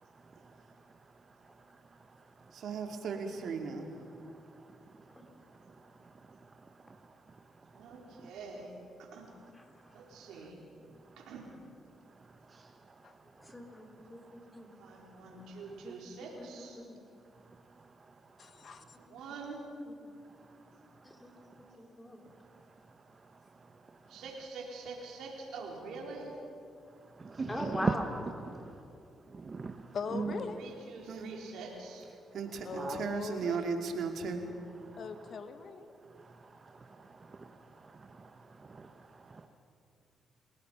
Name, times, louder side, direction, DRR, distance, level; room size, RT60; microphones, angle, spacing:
voice 1, 2.5-3.9 31.1-31.3 32.3-34.5, right 5 dB, 70° right, 4 dB, 2.3 m, -36 dB
voice 2, 7.7-8.7 9.0-9.3 9.9-10.7 11.2-11.5 14.8-16.8 19.1-19.7 24.1-26.4 30.5-32.1, right 4 dB, 85° right, -1 dB, 4.3 m, -45 dB
voice 3, 13.4-14.7 15.8-15.9 16.4-17.0 19.9-20.1 21.0-21.3 22.0-22.2 27.5-28.0, left 1 dB, 15° left, 2 dB, 3.7 m, -41 dB
voice 4, 18.4-19.0 27.6-27.7 29.9-30.7 32.6-33.8 35.0-35.9, left 5 dB, 60° left, 9 dB, 1.5 m, -41 dB
voice 5, 27.2-27.9 28.2-28.7 29.3-29.8 30.1-30.4 32.7-33.0 34.8-35.4 36.2-36.4 36.6-37.5 37.8-38.3 38.6-38.9 39.2-39.5, right 4 dB, 35° right, 6 dB, 1.2 m, -38 dB
30.0 x 18.0 x 5.8 m, 2.6 s
cardioid pair, 85°, 0 cm